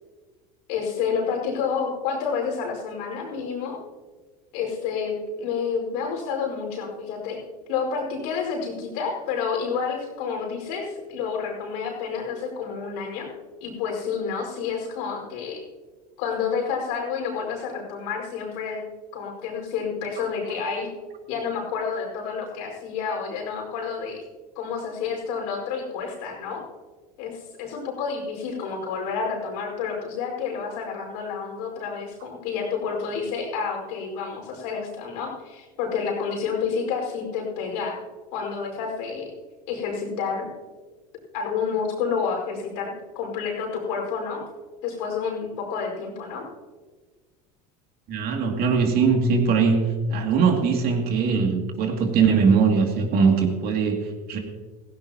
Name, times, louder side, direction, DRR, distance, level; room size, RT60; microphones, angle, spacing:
voice 1, 0.7-3.8 4.5-7.4 7.7-13.3 13.6-15.6 16.2-18.8 19.1-20.9 21.3-24.2 24.5-26.6 27.2-38.0 38.3-39.3 39.7-40.5 41.3-44.4 44.8-46.4, left 6 dB, 75° left, 0 dB, 5.1 m, -29 dB
voice 2, 48.1-49.8 50.1-54.4, right 5 dB, 50° right, 3 dB, 2.6 m, -21 dB
16.0 x 16.0 x 3.0 m, 1.3 s
hypercardioid pair, 95°, 20 cm